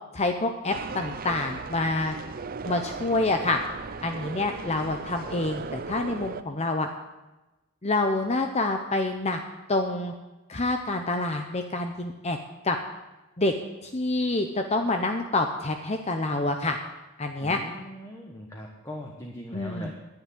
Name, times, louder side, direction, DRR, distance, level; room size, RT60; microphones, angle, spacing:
voice 1, 0.1-2.2 2.6-3.6 4.0-6.9 7.8-9.4 9.7-10.1 10.5-12.4 12.6-12.8 13.4-13.5 13.8-16.8 17.2-17.6 19.5-19.9, left 2 dB, 30° left, 5 dB, 0.8 m, -27 dB
sound 1, 0.7-6.4, right 4 dB, 40° right, 0.5 m, -37 dB
voice 2, 17.4-19.9, left 1 dB, 15° left, 0 dB, 1.4 m, -40 dB
10.5 x 10.0 x 9.7 m, 1.1 s
head